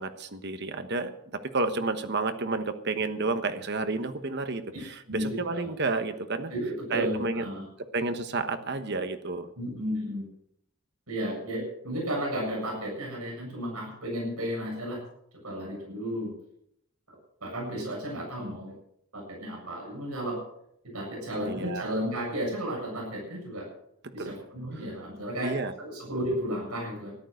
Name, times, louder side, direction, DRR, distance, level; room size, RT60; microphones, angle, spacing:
voice 1, 0.0-6.5 6.9-7.4 7.9-9.5 21.4-21.9 24.0-24.3 24.7-24.9 25.4-25.7, right 3 dB, 50° right, 9 dB, 1.2 m, -31 dB
voice 2, 5.1-5.7 6.5-7.6 9.6-10.3 11.1-15.0 15.4-16.3 17.4-18.7 19.1-20.4 20.9-23.7 24.1-27.1, equal, 90° right, -1 dB, 7.7 m, -33 dB
13.5 x 12.0 x 6.6 m, 0.74 s
head